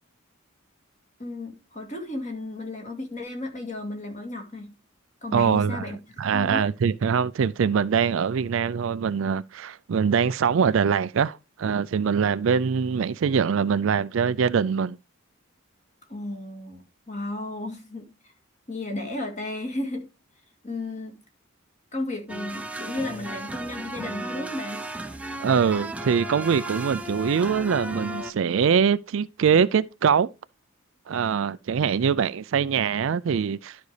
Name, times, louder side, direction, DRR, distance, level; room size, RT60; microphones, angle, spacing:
voice 1, 1.2-4.7 5.2-6.7 16.1-18.3 18.7-20.1 20.6-21.2 21.9-24.8, left 2 dB, 35° left, 2.1 m, -34 dB
voice 2, 5.3-5.8 6.2-15.0 25.4-30.3 31.1-33.8, right 6 dB, 65° right, 0.4 m, -23 dB
sound 1, 22.3-28.3, right 1 dB, 5° right, 0.6 m, -35 dB
12.0 x 5.2 x 3.2 m
head